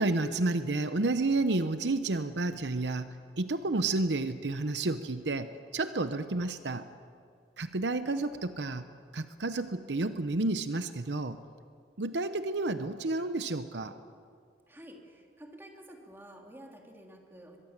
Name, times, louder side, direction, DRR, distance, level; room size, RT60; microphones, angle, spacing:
voice 1, 0.0-3.1 3.4-5.5 5.7-6.8 7.6-8.8 9.1-11.4 12.0-13.9, right 2 dB, 70° right, 10 dB, 0.9 m, -30 dB
voice 2, 14.7-17.6, right 1 dB, 15° right, 1 dB, 3.0 m, -50 dB
23.0 x 22.5 x 7.4 m, 2.2 s
head